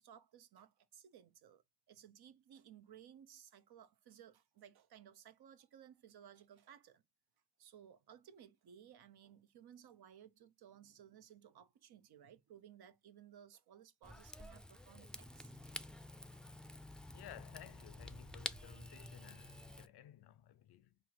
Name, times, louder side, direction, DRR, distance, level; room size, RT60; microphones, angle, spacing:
voice 1, 0.0-7.0 7.6-16.5, right 9 dB, 85° right, 0.6 m, -60 dB
Rain / Fire, 14.0-19.9, left 1 dB, ahead, 0.3 m, -50 dB
voice 2, 17.1-21.0, left 12 dB, 85° left, 0.5 m, -57 dB
4.4 x 2.6 x 2.9 m
cardioid pair, 50°, 37 cm